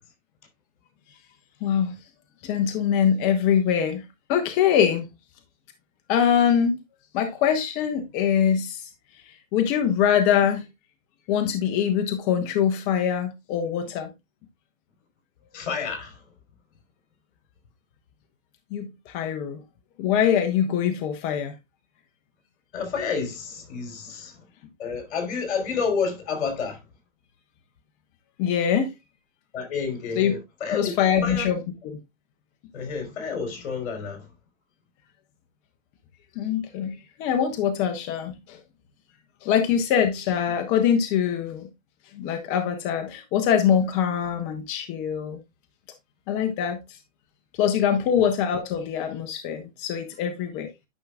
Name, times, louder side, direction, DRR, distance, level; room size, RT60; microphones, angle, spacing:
voice 1, 1.6-2.0 2.4-4.0 4.3-5.1 6.1-6.8 7.1-8.9 9.5-10.7 11.3-14.1 18.7-19.6 20.0-21.5 28.4-28.9 30.2-30.3 30.7-32.0 36.4-36.9 37.2-38.6 39.4-41.7 42.1-45.4 46.3-46.8 47.6-50.7, left 8 dB, 20° left, 0.5 m, -23 dB
voice 2, 15.5-16.2 22.7-24.4 24.8-26.8 29.5-30.9 31.2-31.5 32.7-34.3, left 5 dB, 55° left, 3.5 m, -29 dB
9.8 x 5.9 x 2.3 m
hypercardioid pair, 145°, 39 cm